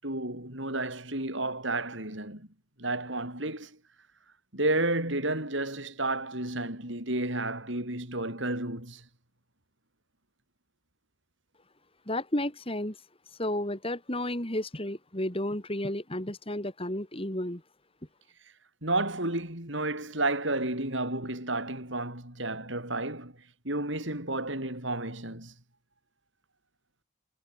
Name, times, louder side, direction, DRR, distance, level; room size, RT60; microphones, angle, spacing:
voice 1, 0.0-2.5 2.8-3.8 4.5-9.0 18.8-23.3 23.6-25.5, right 2 dB, 60° right, 7.3 m, -31 dB
voice 2, 12.1-12.9 13.4-17.6, left 1 dB, 25° left, 3.4 m, -32 dB
head